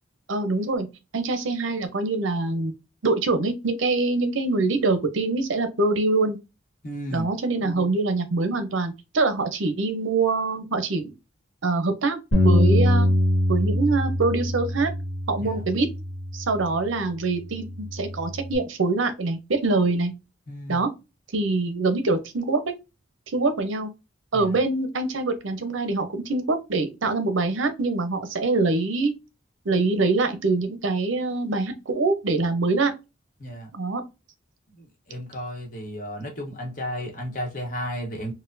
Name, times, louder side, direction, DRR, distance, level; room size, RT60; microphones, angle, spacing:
voice 1, 0.3-0.9 1.1-2.7 3.0-6.4 7.1-11.1 11.6-12.2 12.4-13.1 13.5-14.9 15.3-15.9 16.3-20.1 20.7-20.9 21.3-22.7 23.3-23.9 24.3-29.1 29.6-32.9 33.7-34.0, right 3 dB, 75° right, 0.6 m, -24 dB
voice 2, 6.8-7.3 15.4-15.6 20.5-20.8 24.3-24.5 33.4-33.7 34.8-38.3, equal, 40° left, 1.0 m, -33 dB
Bass guitar, 12.3-16.8 17.4-18.6, left 1 dB, 80° left, 1.3 m, -23 dB
4.1 x 2.1 x 2.5 m
head